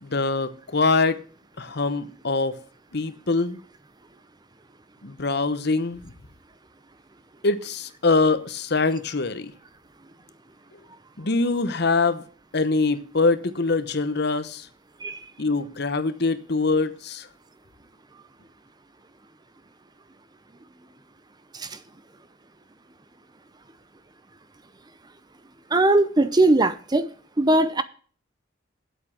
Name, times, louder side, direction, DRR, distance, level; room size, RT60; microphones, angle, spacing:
voice 1, 0.0-1.2 1.6-2.6 2.9-3.6 5.0-6.1 7.4-9.5 11.2-12.2 12.5-14.7 15.4-17.3, left 3 dB, 60° left, 1.1 m, -23 dB
voice 2, 25.7-27.1 27.4-27.8, right 2 dB, 20° right, 0.7 m, -19 dB
8.6 x 8.3 x 7.5 m
head